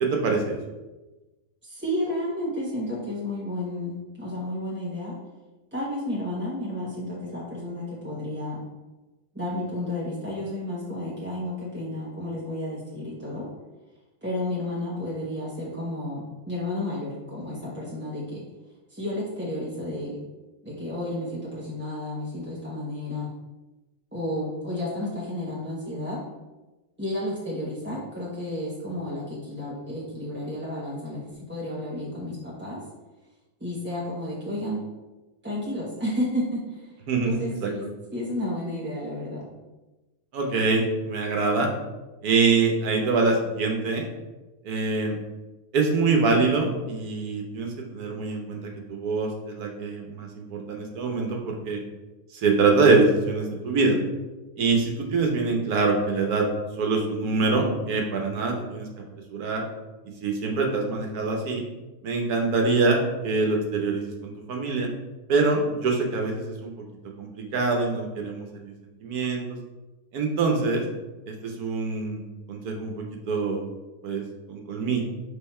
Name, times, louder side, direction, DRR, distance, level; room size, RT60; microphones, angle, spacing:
voice 1, 0.0-0.6 37.1-37.3 37.6-37.7 40.3-41.7 42.2-44.1 44.6-45.2 45.7-48.6 48.9-51.8 52.3-54.0 54.6-56.5 56.8-58.9 59.3-59.6 60.2-61.6 62.0-64.9 65.3-66.7 67.2-68.7 69.0-69.4 70.1-70.8 71.3-72.2 72.5-72.9 73.3-73.6 74.0-74.2 74.5-75.0, right 3 dB, 75° right, 1 dB, 1.4 m, -24 dB
voice 2, 1.6-5.2 5.7-8.6 9.3-13.5 14.2-18.5 18.9-20.2 20.6-23.3 24.1-26.2 27.0-32.8 33.6-34.8 35.4-36.9 37.2-39.5, left 1 dB, 10° right, -6 dB, 0.7 m, -32 dB
5.6 x 4.0 x 4.3 m, 1.1 s
omnidirectional pair, 1.6 m